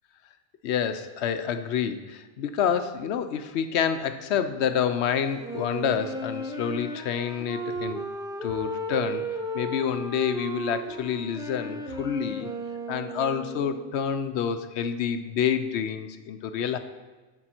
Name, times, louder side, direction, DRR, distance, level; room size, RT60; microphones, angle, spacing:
voice 1, 0.6-8.0 8.4-9.2 9.5-12.5 12.9-16.8, left 8 dB, 80° left, 9 dB, 0.9 m, -28 dB
Wind instrument woodwind instrument, 5.4-14.0, right 1 dB, 5° right, 0.4 m, -35 dB
8.9 x 6.9 x 4.4 m, 1.3 s
omnidirectional pair, 1.1 m